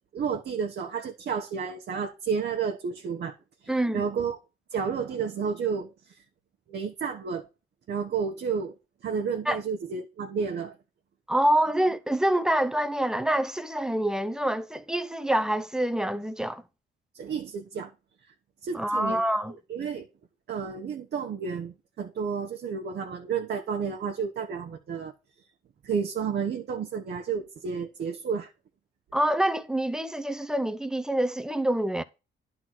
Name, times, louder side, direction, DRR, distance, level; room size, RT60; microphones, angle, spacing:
voice 1, 0.1-3.4 3.6-4.4 4.7-6.2 6.7-7.5 7.9-8.7 9.0-10.8 17.1-17.9 18.6-19.2 19.7-20.1 20.5-25.1 25.8-28.5, right 6 dB, 55° right, 1.1 m, -31 dB
voice 2, 3.7-4.0 9.5-9.6 11.3-16.6 18.7-19.5 29.1-32.0, right 1 dB, 5° right, 0.7 m, -26 dB
10.5 x 3.9 x 6.0 m
cardioid pair, 90°, 20 cm